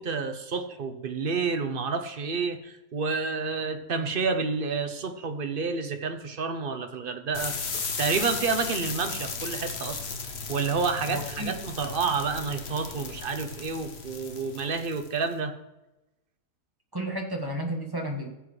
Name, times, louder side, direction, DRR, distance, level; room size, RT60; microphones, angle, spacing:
voice 1, 0.0-7.5 8.0-10.0 10.5-15.5, right 4 dB, 40° right, 7 dB, 0.9 m, -29 dB
sound 1, 7.3-15.2, left 4 dB, 45° left, 1.2 m, -35 dB
voice 2, 11.1-11.5 16.9-18.3, right 1 dB, 15° right, 1 dB, 1.5 m, -32 dB
15.0 x 7.7 x 3.2 m, 0.96 s
omnidirectional pair, 1.6 m